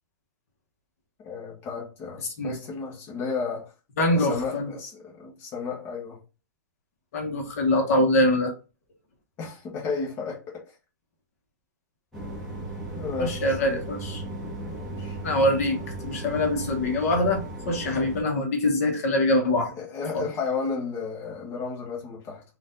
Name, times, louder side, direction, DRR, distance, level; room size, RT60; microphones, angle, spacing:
voice 1, 1.2-3.7 4.0-6.2 9.4-10.6 12.9-13.8 14.6-15.2 19.8-22.4, left 5 dB, 20° left, 1.1 m, -33 dB
voice 2, 4.0-4.7 7.1-8.5 13.2-14.2 15.2-15.8 16.0-19.7 20.1-20.3, left 1 dB, 50° left, 1.1 m, -24 dB
sound 1, 12.1-18.2, right 1 dB, 5° left, 1.3 m, -36 dB
4.2 x 2.6 x 3.8 m
hypercardioid pair, 170°, 10 cm